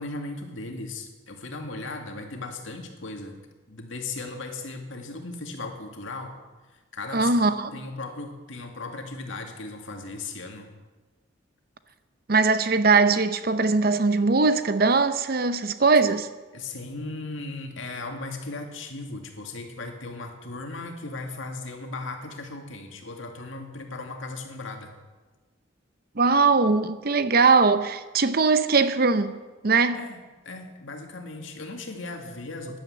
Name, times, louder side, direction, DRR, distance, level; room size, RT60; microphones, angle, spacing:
voice 1, 0.0-3.4 3.7-6.3 6.9-7.3 7.7-10.7 16.5-24.9 29.9-30.2 30.4-32.8, left 3 dB, 70° left, 2.2 m, -37 dB
voice 2, 7.1-7.7 12.3-16.3 26.2-29.3 29.6-30.0, right 4 dB, 45° right, 0.7 m, -21 dB
12.0 x 11.0 x 7.8 m
head